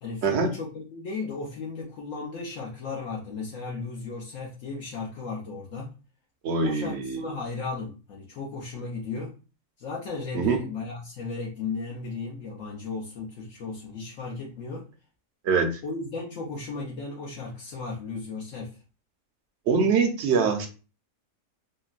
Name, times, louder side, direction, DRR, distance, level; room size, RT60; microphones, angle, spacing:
voice 1, 0.0-5.9 6.6-9.3 9.8-14.9 15.8-18.8, left 4 dB, 70° left, -3 dB, 1.0 m, -35 dB
voice 2, 6.4-7.2 10.3-10.6 15.4-15.7 19.7-20.7, right 5 dB, 60° right, 4 dB, 0.8 m, -23 dB
3.8 x 2.1 x 2.4 m, 0.33 s
omnidirectional pair, 1.4 m